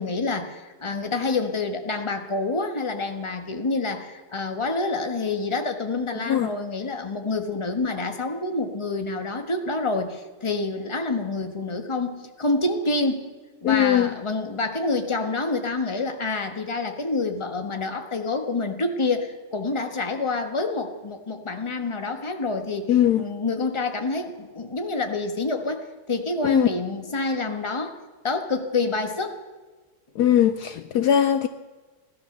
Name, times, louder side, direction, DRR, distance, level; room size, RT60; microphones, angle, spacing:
voice 1, 0.0-13.2 13.6-22.9 23.2-28.0 28.2-29.4, left 3 dB, 15° left, 1.1 m, -27 dB
voice 2, 6.2-6.5 13.6-14.2 22.9-23.3 26.4-26.7 30.1-31.5, left 10 dB, 85° left, 0.8 m, -20 dB
17.0 x 12.5 x 6.7 m
omnidirectional pair, 2.4 m